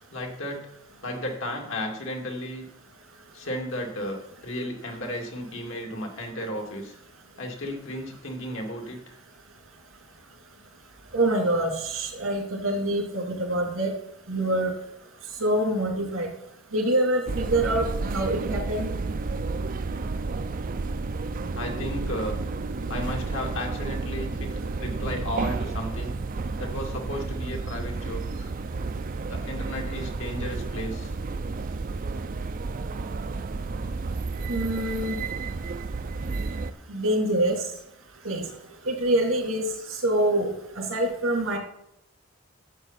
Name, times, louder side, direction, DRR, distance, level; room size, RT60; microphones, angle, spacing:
voice 1, 0.1-0.6 1.0-2.7 3.3-6.9 7.4-9.1 21.5-22.4 22.9-24.5 24.8-26.2 26.6-28.5 29.3-31.1, left 1 dB, 75° left, 1 dB, 2.3 m, -34 dB
voice 2, 11.1-13.9 14.3-14.7 15.4-16.3 16.7-18.9 34.5-35.2 36.9-37.5 38.2-38.5 38.9-41.6, right 1 dB, 90° right, 1 dB, 3.1 m, -25 dB
sound 1, 17.3-36.7, right 3 dB, 40° right, 0.4 m, -31 dB
11.5 x 7.8 x 4.1 m, 0.79 s
head